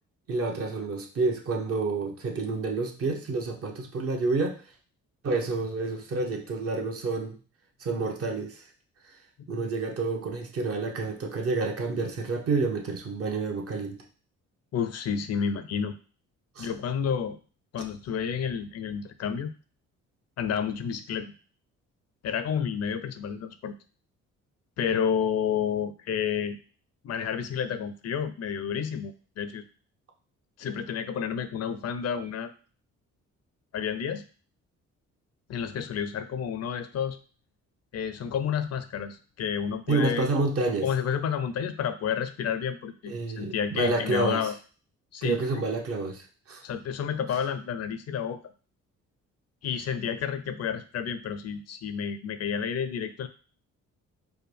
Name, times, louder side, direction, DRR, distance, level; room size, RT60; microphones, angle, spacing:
voice 1, 0.3-4.6 5.2-7.4 7.8-8.6 9.5-14.0 16.6-16.7 39.9-40.9 43.1-44.4 45.2-46.6, right 3 dB, 50° right, 2 dB, 0.9 m, -29 dB
voice 2, 14.7-16.0 16.6-17.4 17.7-19.5 20.4-21.3 22.2-23.8 24.8-26.6 27.0-29.6 30.6-32.5 33.7-34.3 35.5-37.2 37.9-40.4 40.8-44.6 45.1-45.6 46.6-48.4 49.6-53.3, left 7 dB, 55° left, 11 dB, 0.5 m, -30 dB
4.7 x 2.2 x 3.3 m, 0.38 s
cardioid pair, 90°, 30 cm